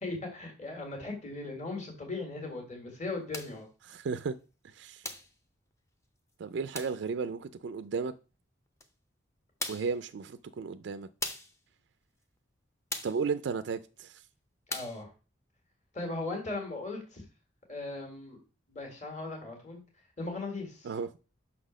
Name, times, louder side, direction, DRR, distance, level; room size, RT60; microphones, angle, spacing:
voice 1, 0.0-3.7 14.7-15.1 15.9-17.2 17.7-18.4 18.7-19.8 20.2-20.9, left 2 dB, 35° left, 1.7 m, -38 dB
sound 1, 3.3-3.6 5.0-5.3 6.7-7.0 8.8-8.9 9.6-10.0 11.2-11.6 12.9-13.2 14.7-15.0, left 2 dB, 15° left, 0.6 m, -38 dB
voice 2, 3.9-4.4 4.6-5.1 6.4-8.1 9.7-11.1 13.0-14.2 20.8-21.1, right 5 dB, 65° right, 0.3 m, -34 dB
5.8 x 4.1 x 6.1 m
head